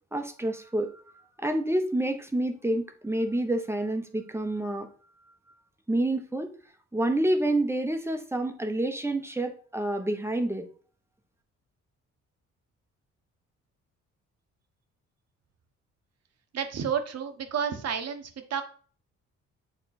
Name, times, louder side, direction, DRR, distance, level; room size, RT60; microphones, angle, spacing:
voice 1, 0.1-0.9 1.4-4.9 5.9-6.5 6.9-10.7, right 1 dB, 10° right, 6 dB, 0.9 m, -28 dB
voice 2, 16.5-18.6, right 7 dB, 55° right, 8 dB, 1.1 m, -31 dB
6.8 x 3.9 x 4.1 m, 0.42 s
cardioid pair, 90°, 30 cm